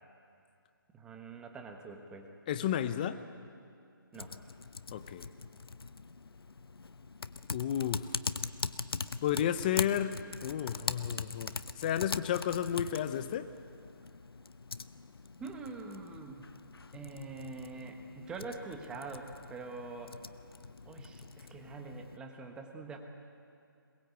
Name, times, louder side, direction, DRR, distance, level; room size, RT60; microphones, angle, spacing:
voice 1, 0.9-2.3 4.1-4.3 15.4-16.4 16.9-20.1 20.8-23.0, right 3 dB, 5° right, 3 dB, 1.2 m, -44 dB
voice 2, 2.5-3.2 4.9-5.3 7.5-8.1 9.2-13.5, left 10 dB, 20° left, 12 dB, 0.8 m, -32 dB
Typing, 4.1-22.2, left 4 dB, 85° left, 0.9 m, -42 dB
22.0 x 21.0 x 8.2 m, 2.4 s
hypercardioid pair, 160°, 12 cm